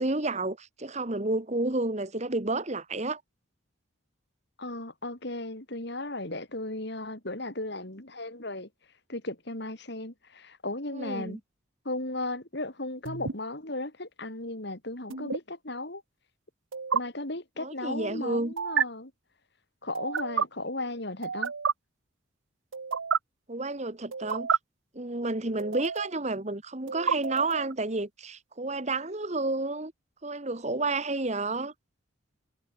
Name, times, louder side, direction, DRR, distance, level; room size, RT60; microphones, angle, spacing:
voice 1, 0.0-3.2 10.9-11.4 17.6-18.5 23.5-24.5 24.9-29.9 30.2-31.7, right 2 dB, 35° right, 1.3 m, -30 dB
voice 2, 4.6-8.7 9.1-11.4 11.8-16.0 16.9-19.1 19.8-21.5, left 2 dB, 55° left, 3.4 m, -36 dB
sound 1, 13.1-13.3 15.1-15.4 16.7-17.0 18.6-18.8 19.9-20.5 21.2-21.7 22.7-23.2 24.1-24.6 25.6-26.2 26.9-27.7, right 6 dB, 70° right, 0.8 m, -29 dB
head